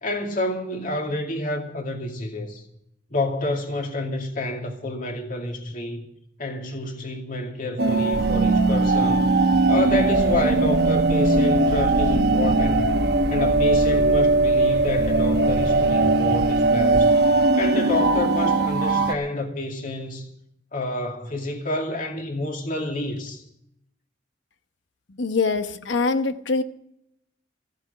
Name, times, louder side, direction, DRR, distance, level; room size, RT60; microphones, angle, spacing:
voice 1, 0.0-2.6 3.1-6.1 6.4-9.3 9.7-12.9 13.3-17.1 17.6-20.3 20.7-23.4, left 2 dB, 45° left, 2.4 m, -29 dB
sound 1, 7.8-19.1, right 2 dB, 55° right, 1.0 m, -20 dB
sound 2, 8.1-17.5, right 1 dB, 75° right, 1.2 m, -31 dB
voice 2, 25.2-26.6, left 4 dB, 70° left, 1.0 m, -23 dB
15.0 x 8.0 x 9.5 m
head